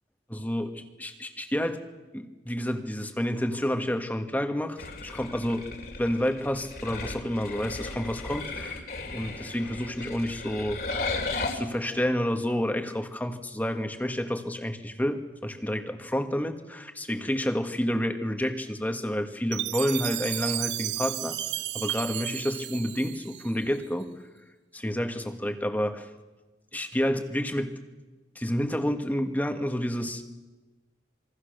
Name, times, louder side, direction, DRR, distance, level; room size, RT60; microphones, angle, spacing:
voice 1, 0.3-0.7 1.0-1.8 2.1-4.8 5.0-5.7 6.0-10.8 11.5-21.4 21.7-24.1 24.7-26.1 26.7-27.8 28.3-30.2, equal, 10° left, 6 dB, 1.6 m, -29 dB
sound 1, 4.8-11.5, left 3 dB, 55° left, 3.1 m, -35 dB
Chime, 19.5-23.8, right 15 dB, 80° right, 0.7 m, -33 dB
27.5 x 23.0 x 6.7 m, 1.2 s
head